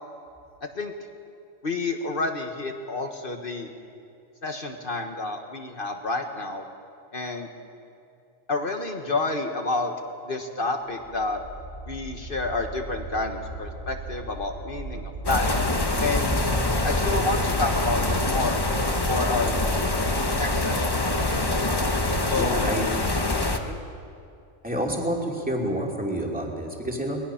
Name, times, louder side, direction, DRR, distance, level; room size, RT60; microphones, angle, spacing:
voice 1, 1.6-3.7 4.4-6.6 7.1-7.5 8.5-9.9 10.3-11.4 11.9-15.5 16.0-16.3 16.8-18.6 19.1-19.6 20.3-21.7 22.3-22.6 23.5-23.8, left 3 dB, 45° left, 4 dB, 1.5 m, -29 dB
sound 1, 11.0-23.6 24.1-24.2, right 2 dB, 80° right, 5.7 m, -39 dB
sound 2, 15.2-23.6, left 2 dB, 20° left, 1.0 m, -25 dB
voice 2, 22.4-22.9 24.6-27.2, right 1 dB, 5° right, -1 dB, 2.5 m, -28 dB
23.0 x 20.0 x 5.8 m, 2.5 s
omnidirectional pair, 1.3 m